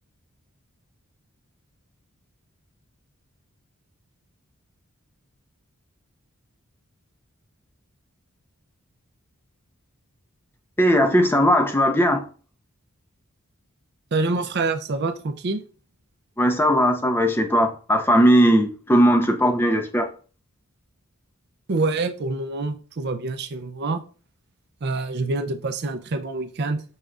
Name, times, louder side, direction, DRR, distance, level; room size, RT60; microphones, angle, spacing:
voice 1, 10.8-12.3 16.4-20.1, equal, 10° left, 0.5 m, -18 dB
voice 2, 14.1-15.6 21.7-24.0 24.8-26.8, right 3 dB, 50° right, 0.5 m, -26 dB
6.4 x 3.3 x 2.4 m
head